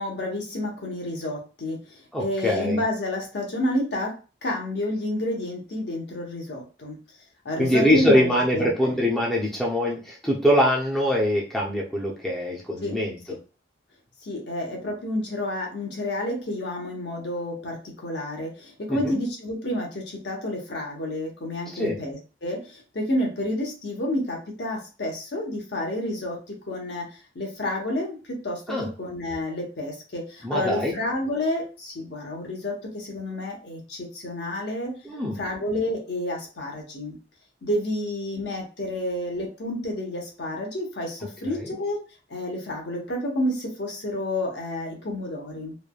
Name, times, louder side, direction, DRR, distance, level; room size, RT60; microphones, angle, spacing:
voice 1, 0.0-4.2 4.4-7.0 7.4-9.0 12.8-13.0 14.2-28.6 29.0-35.0 35.4-37.2 37.6-42.0 42.3-45.8, left 1 dB, 60° left, 0 dB, 0.8 m, -30 dB
voice 2, 2.1-2.8 7.6-13.2 18.9-19.1 21.7-21.9 28.7-28.9 30.4-31.0 35.0-35.4 41.4-41.7, equal, ahead, -3 dB, 0.5 m, -23 dB
3.2 x 2.1 x 2.2 m, 0.34 s
head